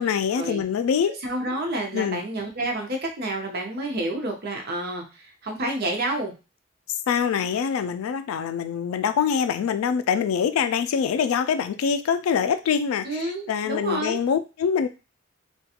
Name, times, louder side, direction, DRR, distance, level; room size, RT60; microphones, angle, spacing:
voice 1, 0.0-1.2 1.9-2.2 6.9-14.9, left 7 dB, 85° left, 11 dB, 0.3 m, -24 dB
voice 2, 1.2-6.3 13.0-14.2, right 1 dB, 50° right, 2 dB, 0.6 m, -29 dB
2.4 x 2.2 x 2.7 m, 0.30 s
head